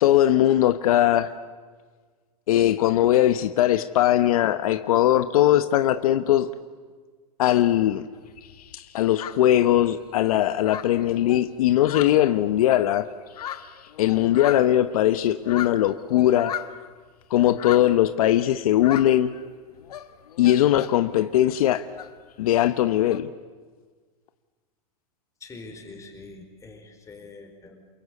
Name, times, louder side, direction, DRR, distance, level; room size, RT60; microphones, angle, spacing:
voice 1, 0.0-1.3 2.5-6.5 7.4-8.1 8.7-13.1 14.0-16.5 17.3-19.3 20.4-21.9 22.4-23.3, left 12 dB, 70° left, 11 dB, 1.0 m, -20 dB
sound 1, 8.1-10.1 10.4-12.8 13.1-16.9 17.4-18.1 18.7-19.5 19.8-21.1 21.4-23.2, left 10 dB, 90° left, 1.5 m, -38 dB
voice 2, 25.4-27.9, left 3 dB, 15° left, 4 dB, 4.5 m, -44 dB
28.0 x 23.0 x 8.4 m, 1.5 s
supercardioid pair, 140°, 19 cm